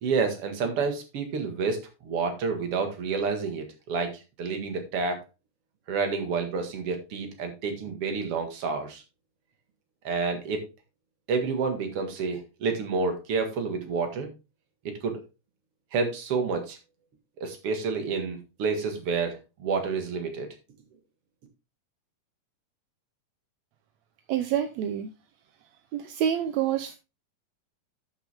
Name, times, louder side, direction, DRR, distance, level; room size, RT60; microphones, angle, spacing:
voice 1, 0.0-5.2 5.9-9.0 10.0-10.7 11.3-14.3 15.0-15.2 15.9-16.8 17.4-20.5, right 4 dB, 50° right, 5 dB, 2.5 m, -29 dB
voice 2, 24.3-25.1 25.9-27.0, right 9 dB, 75° right, 8 dB, 1.7 m, -27 dB
12.0 x 6.0 x 3.5 m, 0.28 s
omnidirectional pair, 3.7 m